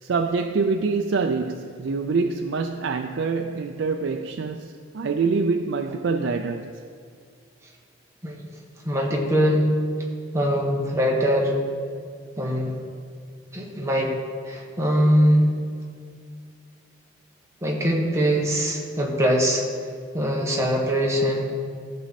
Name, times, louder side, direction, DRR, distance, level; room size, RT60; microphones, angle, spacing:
voice 1, 0.0-6.8, right 4 dB, 70° right, 0.4 m, -25 dB
voice 2, 8.8-9.7 10.3-11.5 12.4-12.8 13.5-14.1 14.5-15.5 17.6-19.7 20.1-21.5, equal, 15° right, 1.3 m, -22 dB
14.5 x 6.2 x 4.1 m
head